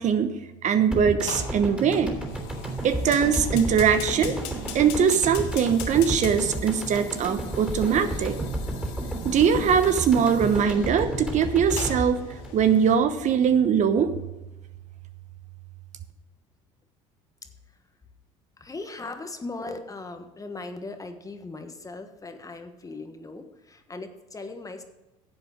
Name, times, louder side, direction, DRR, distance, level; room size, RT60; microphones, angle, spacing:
voice 1, 0.0-2.2 2.8-4.4 4.7-8.4 9.2-14.2, right 7 dB, 50° right, 9 dB, 1.0 m, -22 dB
sound 1, 0.9-13.2 13.5-13.6, right 1 dB, 5° right, 3.3 m, -32 dB
Fire, 1.2-12.9, left 9 dB, 75° left, 1.4 m, -42 dB
voice 2, 17.4-17.8 18.6-24.8, left 3 dB, 20° left, 7 dB, 1.3 m, -39 dB
11.0 x 7.8 x 5.1 m, 1.0 s
supercardioid pair, 80°, 16 cm